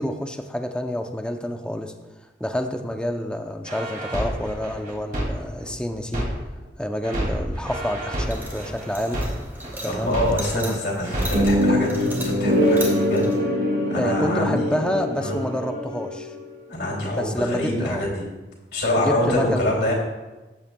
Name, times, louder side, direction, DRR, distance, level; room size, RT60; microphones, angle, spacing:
voice 1, 0.0-1.9 2.4-6.3 6.8-9.2 9.8-10.2 10.5-10.8 11.0-11.1 14.0-16.3 17.1-18.0 19.0-19.7, equal, 5° left, 5 dB, 0.5 m, -28 dB
sound 1, 3.6-6.7 7.0-10.7 11.0-11.6, right 1 dB, 50° right, 2.5 m, -29 dB
sound 2, 8.2-13.4, right 1 dB, 10° right, 2.1 m, -37 dB
voice 2, 9.9-13.3 13.9-14.8 15.2-15.4 16.7-18.2 18.7-19.9, left 1 dB, 70° left, -3 dB, 2.8 m, -25 dB
sound 3, 11.3-16.4, left 1 dB, 90° right, 3.0 m, -23 dB
13.5 x 8.6 x 2.3 m, 1.2 s
head